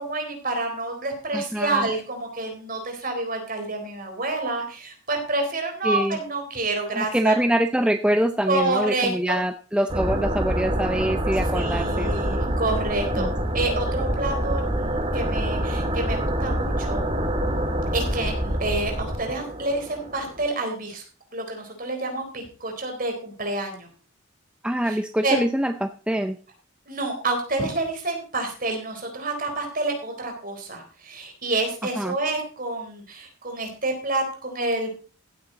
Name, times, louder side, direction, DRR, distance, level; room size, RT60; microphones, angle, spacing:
voice 1, 0.0-7.4 8.5-9.4 11.5-13.3 13.5-17.0 17.9-21.0 21.3-23.9 24.8-25.5 26.9-34.9, right 2 dB, 45° right, 3 dB, 3.9 m, -28 dB
voice 2, 1.3-1.9 5.8-6.2 6.9-12.1 13.2-13.3 24.6-26.4 32.0-32.1, right 1 dB, 5° right, 8 dB, 0.5 m, -24 dB
sound 1, 9.9-20.5, right 1 dB, 25° right, 1.7 m, -26 dB
15.5 x 8.7 x 4.0 m, 0.37 s
head